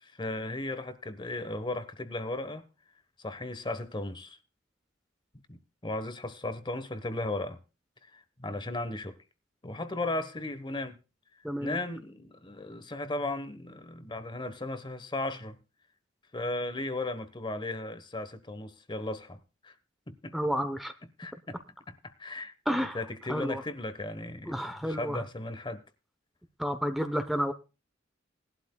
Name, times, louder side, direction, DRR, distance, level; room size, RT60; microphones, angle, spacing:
voice 1, 0.0-2.7 3.2-4.4 5.5-7.6 8.1-9.2 9.6-11.0 11.6-15.6 16.3-19.7 20.1-20.3 21.2-21.6 21.9-25.8, left 2 dB, 25° left, 1.2 m, -36 dB
voice 2, 11.4-11.8 20.3-20.9 22.7-23.0 23.3-23.6 24.5-25.2 26.6-27.5, equal, ahead, 0.9 m, -30 dB
20.0 x 12.0 x 2.3 m
head